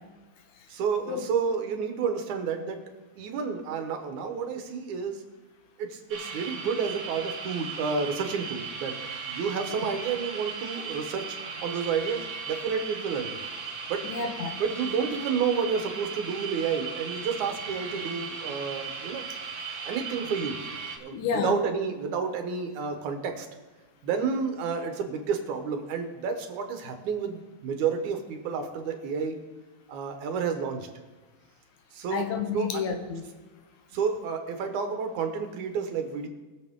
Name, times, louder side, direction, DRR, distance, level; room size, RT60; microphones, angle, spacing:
voice 1, 0.7-2.8 3.2-5.2 5.8-9.0 9.3-13.4 13.9-14.1 14.6-19.3 19.8-20.6 21.0-23.5 24.0-29.4 29.9-30.9 31.9-32.3 32.5-32.7 33.9-36.3, right 6 dB, 85° right, 5 dB, 2.7 m, -30 dB
sound 1, 6.1-21.0, right 5 dB, 65° right, 0.7 m, -37 dB
voice 2, 14.0-14.6 21.1-21.5 32.1-33.2, left 6 dB, 80° left, 5 dB, 2.6 m, -30 dB
21.5 x 7.3 x 3.7 m, 1.3 s
omnidirectional pair, 3.4 m